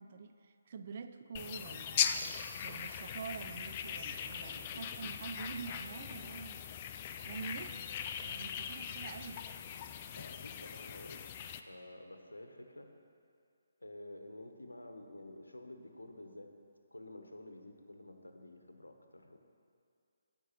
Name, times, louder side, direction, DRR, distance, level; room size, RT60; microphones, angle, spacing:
voice 1, 0.0-6.6 7.3-9.4, right 5 dB, 40° right, 8 dB, 0.4 m, -46 dB
sound 1, 1.4-11.6, left 8 dB, 30° left, 0.3 m, -40 dB
voice 2, 4.5-5.1 10.1-12.9 13.8-16.5 16.9-19.4, left 1 dB, 85° left, 5 dB, 0.8 m, -51 dB
14.0 x 5.2 x 3.0 m, 2.3 s
figure-of-eight pair, 145°, 0 cm